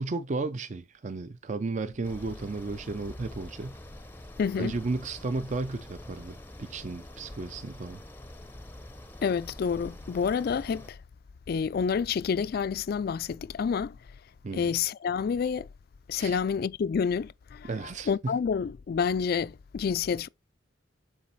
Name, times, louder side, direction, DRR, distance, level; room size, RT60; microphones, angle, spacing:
voice 1, 0.0-3.8 4.6-8.0 14.4-14.8 16.2-16.4 17.7-18.4, right 3 dB, 40° right, 0.4 m, -34 dB
sound 1, 2.0-10.9, left 1 dB, 10° left, 0.6 m, -46 dB
voice 2, 4.4-4.7 9.2-11.0 11.5-14.0 14.5-15.7 16.1-17.7 18.1-20.3, left 6 dB, 50° left, 0.3 m, -28 dB
7.3 x 4.0 x 4.0 m
head